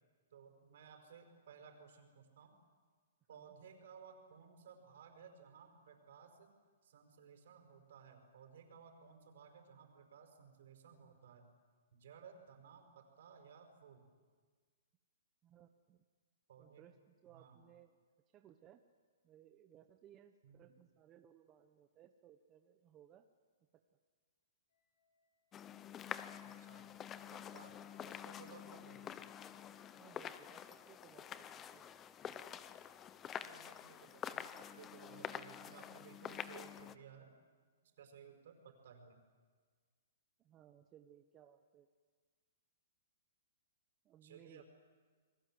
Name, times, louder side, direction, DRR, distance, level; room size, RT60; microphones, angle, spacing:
voice 1, 0.3-2.6 3.3-6.5 6.8-11.5 11.9-14.1 16.5-16.8 17.3-17.6 20.4-20.7 26.4-26.9 27.3-27.8 28.1-29.2 33.4-37.3 37.8-39.2 44.2-44.6, right 7 dB, 65° right, 5 dB, 5.4 m, -58 dB
voice 2, 15.4-16.0 16.6-18.0 18.3-18.8 19.2-23.3 28.0-28.2 28.6-28.7 29.9-31.8 40.4-41.9 44.0-44.6, right 10 dB, 20° right, 6 dB, 1.0 m, -63 dB
sound 1, 24.7-26.1 27.5-29.7, left 2 dB, 60° left, 7.9 m, -77 dB
sound 2, 25.5-36.9, left 9 dB, 20° left, 0.8 m, -48 dB
29.5 x 21.0 x 7.8 m, 1.5 s
hypercardioid pair, 155°, 0 cm